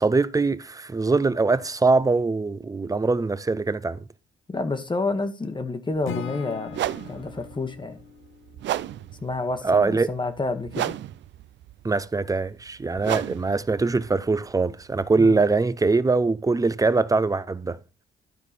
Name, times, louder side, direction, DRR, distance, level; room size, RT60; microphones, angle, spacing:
voice 1, 0.0-4.0 9.6-10.1 11.8-17.8, right 3 dB, 15° right, 0.5 m, -22 dB
voice 2, 4.5-6.8 7.1-8.0 9.2-11.0 15.2-15.4, left 3 dB, 25° left, 1.2 m, -29 dB
sound 1, 5.9-6.1 6.7-15.5, right 13 dB, 65° right, 0.5 m, -34 dB
Acoustic guitar / Strum, 6.0-9.2, left 8 dB, 90° left, 0.8 m, -39 dB
12.0 x 4.6 x 4.2 m
cardioid pair, 90°, 20 cm